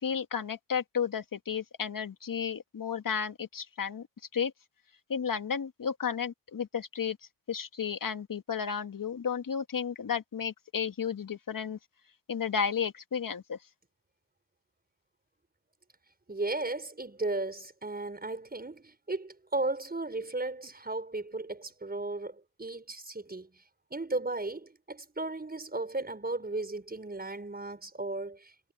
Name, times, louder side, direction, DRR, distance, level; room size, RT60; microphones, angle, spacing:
voice 1, 0.0-4.1 4.3-4.5 5.1-7.2 7.5-11.8 12.3-13.6, left 7 dB, 45° left, 2.1 m, -33 dB
voice 2, 16.3-23.6 23.9-28.7, right 2 dB, 20° right, 5.6 m, -35 dB
supercardioid pair, 60°, 44 cm